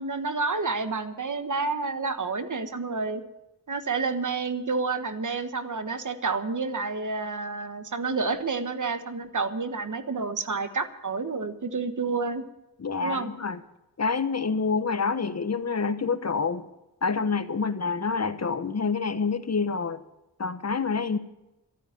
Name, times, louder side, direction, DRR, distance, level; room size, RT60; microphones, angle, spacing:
voice 1, 0.0-3.2 3.7-12.4 13.0-13.3, right 4 dB, 60° right, 10 dB, 1.5 m, -29 dB
voice 2, 12.8-13.6 14.0-16.7 17.0-20.0 20.4-21.2, left 4 dB, 45° left, 12 dB, 1.1 m, -27 dB
13.5 x 9.0 x 9.9 m, 0.93 s
wide cardioid pair, 70°, 35 cm